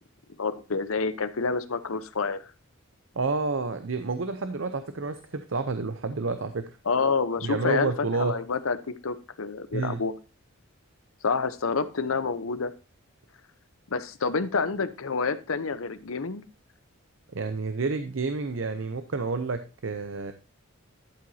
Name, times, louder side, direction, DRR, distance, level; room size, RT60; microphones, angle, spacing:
voice 1, 0.4-2.4 6.9-7.9 8.2-10.1 11.2-12.7 13.9-16.4, left 4 dB, 75° left, 13 dB, 0.8 m, -28 dB
voice 2, 3.2-6.7 7.4-8.4 9.7-10.0 17.3-20.3, right 4 dB, 65° right, 9 dB, 0.7 m, -29 dB
12.0 x 7.7 x 2.7 m, 0.31 s
head